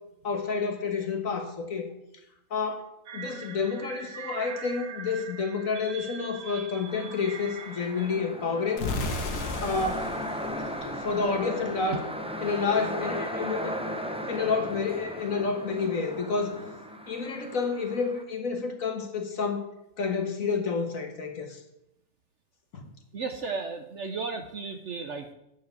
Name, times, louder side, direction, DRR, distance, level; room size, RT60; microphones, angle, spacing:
voice 1, 0.2-1.9 2.5-8.9 9.6-10.1 10.8-12.0 12.4-13.8 14.3-16.6 17.1-19.6 20.0-21.6 22.7-22.9, left 5 dB, 55° left, 5 dB, 1.7 m, -29 dB
sound 1, 3.1-8.1, right 6 dB, 75° right, 1.7 m, -42 dB
sound 2, 6.9-18.2, equal, 5° right, 0.4 m, -37 dB
sound 3, 8.8-11.6, left 2 dB, 70° left, 1.8 m, -34 dB
voice 2, 23.1-25.3, right 4 dB, 55° right, 7 dB, 0.9 m, -35 dB
8.2 x 7.2 x 7.9 m, 0.84 s
omnidirectional pair, 1.8 m